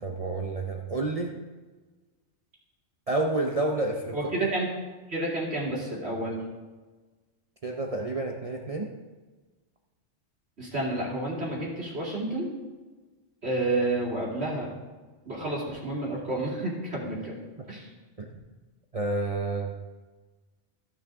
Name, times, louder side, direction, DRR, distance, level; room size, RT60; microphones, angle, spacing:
voice 1, 0.0-1.3 3.1-4.6 7.6-8.9 18.2-18.3 18.9-19.7, right 2 dB, 35° right, 1 dB, 0.7 m, -29 dB
voice 2, 4.1-4.7 5.1-6.4 10.6-12.5 13.4-14.7 15.2-17.4 17.7-17.9, right 2 dB, 60° right, -5 dB, 3.1 m, -30 dB
15.0 x 6.3 x 3.6 m, 1.3 s
omnidirectional pair, 1.2 m